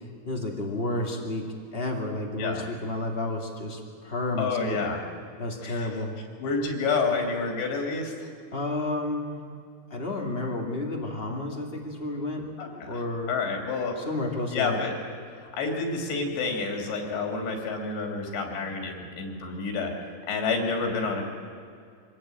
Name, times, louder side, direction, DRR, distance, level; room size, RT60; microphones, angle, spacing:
voice 1, 0.2-4.8 5.4-6.2 8.5-9.4 9.9-12.5 12.9-13.3 14.0-14.8, left 2 dB, 30° left, 2 dB, 1.0 m, -31 dB
voice 2, 4.4-5.0 5.6-5.9 6.4-8.3 12.6-13.0 13.3-13.9 14.5-14.9 15.4-19.9 20.3-21.2, left 4 dB, 70° left, 3 dB, 5.1 m, -29 dB
25.5 x 18.0 x 8.8 m, 2.3 s
omnidirectional pair, 5.2 m